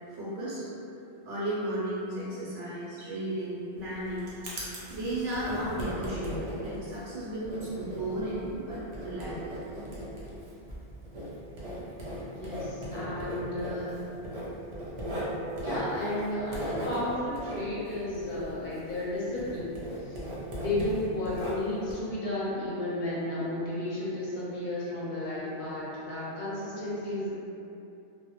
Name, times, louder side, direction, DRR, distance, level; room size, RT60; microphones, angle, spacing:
voice 1, 0.1-0.7 1.2-4.4 4.9-9.5 20.5-21.0, right 1 dB, 85° right, -8 dB, 0.9 m, -34 dB
Writing, 3.8-19.1 19.4-21.9, equal, 55° right, 0.4 m, -38 dB
voice 2, 12.3-14.0 15.6-19.8 20.0-20.2 20.6-27.3, left 1 dB, 50° left, -8 dB, 0.7 m, -33 dB
2.2 x 2.0 x 2.9 m, 2.8 s
omnidirectional pair, 1.2 m